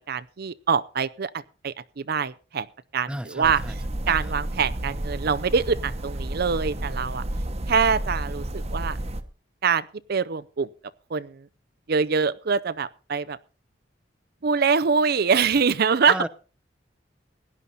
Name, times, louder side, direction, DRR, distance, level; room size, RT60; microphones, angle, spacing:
voice 1, 0.1-2.7 2.9-3.6 4.1-7.2 7.7-9.0 9.6-10.7 11.1-11.5 11.9-13.4 14.4-16.1, right 5 dB, 60° right, 0.6 m, -24 dB
voice 2, 3.1-3.8 4.0-4.3 16.1-16.3, right 1 dB, 5° right, 0.6 m, -33 dB
sound 1, 3.4-9.2, right 1 dB, 35° right, 1.1 m, -31 dB
17.0 x 11.0 x 4.1 m
head